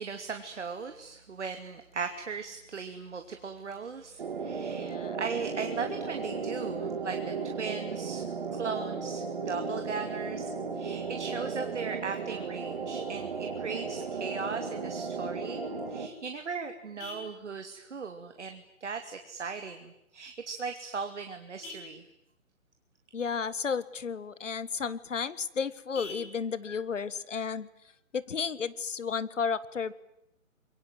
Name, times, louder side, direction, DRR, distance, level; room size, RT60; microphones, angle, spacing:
voice 1, 0.0-15.6 15.9-22.0, right 5 dB, 55° right, 6 dB, 2.7 m, -38 dB
sound 1, 4.2-16.1, right 5 dB, 40° right, 2.6 m, -35 dB
voice 2, 4.7-5.2 23.1-27.7 28.1-29.9, left 6 dB, 60° left, 17 dB, 1.6 m, -33 dB
Vehicle horn car horn honking, 15.7-28.7, left 2 dB, 15° left, 6.6 m, -53 dB
27.0 x 23.0 x 9.3 m, 0.82 s
hypercardioid pair, 170°, 41 cm